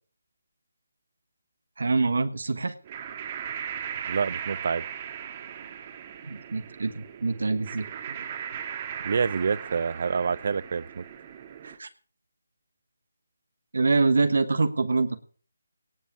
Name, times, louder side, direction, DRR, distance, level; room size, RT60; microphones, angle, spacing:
voice 1, 1.8-2.7 6.2-8.2 11.8-11.9 13.7-15.2, right 3 dB, 70° right, 9 dB, 1.3 m, -25 dB
sound 1, 2.8-11.8, right 8 dB, 30° right, 1.6 m, -38 dB
voice 2, 4.1-4.8 9.0-11.0 11.6-11.8, right 5 dB, 50° right, 21 dB, 0.6 m, -27 dB
18.0 x 7.4 x 7.1 m, 0.42 s
figure-of-eight pair, 155°, 0 cm